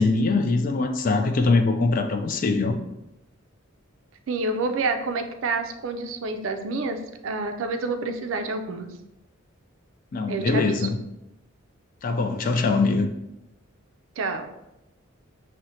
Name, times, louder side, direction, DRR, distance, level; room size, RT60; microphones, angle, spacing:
voice 1, 0.0-2.8 10.1-11.0 12.0-13.1, left 3 dB, 40° left, 6 dB, 0.3 m, -22 dB
voice 2, 4.3-8.9 10.3-10.9 14.2-14.5, right 3 dB, 65° right, 6 dB, 0.4 m, -28 dB
6.0 x 2.1 x 2.7 m, 0.92 s
head